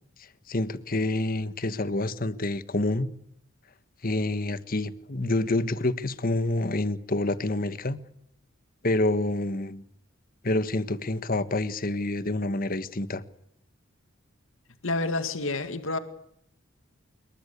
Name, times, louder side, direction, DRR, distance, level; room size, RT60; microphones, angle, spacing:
voice 1, 0.5-3.1 4.0-8.0 8.8-9.8 10.4-13.2, left 2 dB, 45° left, 1.4 m, -27 dB
voice 2, 14.8-16.0, left 2 dB, 80° left, 2.2 m, -28 dB
26.5 x 22.5 x 8.5 m
head